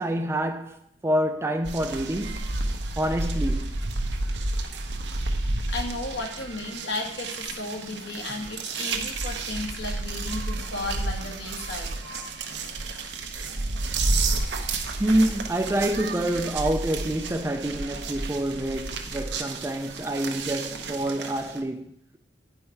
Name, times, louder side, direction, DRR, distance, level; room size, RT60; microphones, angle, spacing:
voice 1, 0.0-2.5 3.0-3.7 15.0-21.9, right 1 dB, 15° right, 0.4 m, -27 dB
sound 1, 1.6-21.6, right 2 dB, 85° right, 1.0 m, -31 dB
voice 2, 5.4-11.9, left 2 dB, 80° left, 1.8 m, -34 dB
9.3 x 5.5 x 4.5 m
head